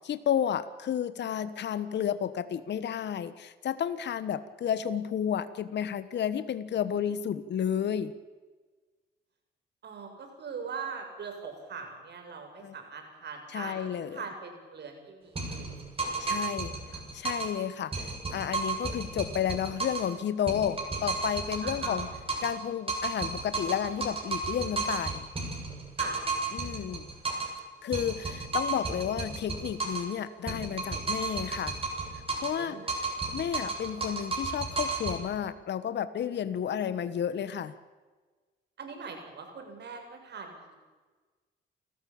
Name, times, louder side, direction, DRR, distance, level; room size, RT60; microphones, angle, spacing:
voice 1, 0.0-8.1 12.6-12.7 13.5-14.2 16.2-16.7 17.1-22.1 22.4-25.3 26.5-27.0 27.8-31.7 32.4-32.8 33.3-37.7, left 9 dB, 60° left, 13 dB, 1.4 m, -31 dB
voice 2, 9.8-15.7 16.0-17.0 21.6-22.0 26.0-26.2 32.6-33.3 38.8-40.8, right 5 dB, 60° right, 3 dB, 7.4 m, -42 dB
sound 1, 15.4-17.6 17.9-20.1 20.5-22.6 22.9-27.6 27.9-30.1 30.5-32.6 32.9-35.2, right 3 dB, 30° right, 7.7 m, -33 dB
28.5 x 14.5 x 8.8 m, 1.3 s
cardioid pair, 90°, 20 cm